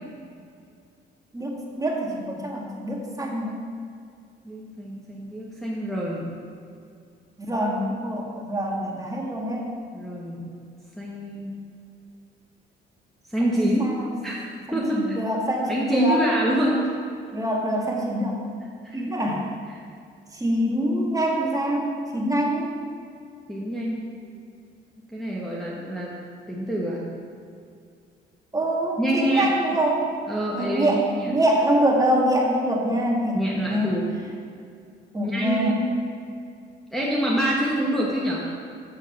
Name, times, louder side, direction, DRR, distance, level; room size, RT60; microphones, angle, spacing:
voice 1, 1.3-3.6 7.5-9.7 13.4-13.5 13.8-14.1 14.7-16.2 17.3-18.4 18.9-19.5 20.3-22.7 28.5-30.1 30.6-33.9 35.1-35.7, right 1 dB, 15° right, -1 dB, 1.9 m, -25 dB
voice 2, 4.4-6.4 9.9-10.6 11.0-11.5 13.3-14.0 14.2-14.4 14.7-15.2 15.7-17.0 18.8-19.4 19.7-19.8 23.5-24.1 25.1-26.2 26.5-27.1 29.0-29.5 30.3-31.3 33.3-34.1 35.2-35.8 36.9-38.4, right 1 dB, ahead, -6 dB, 1.4 m, -26 dB
7.5 x 6.8 x 6.4 m, 2.3 s
cardioid pair, 90°, 20 cm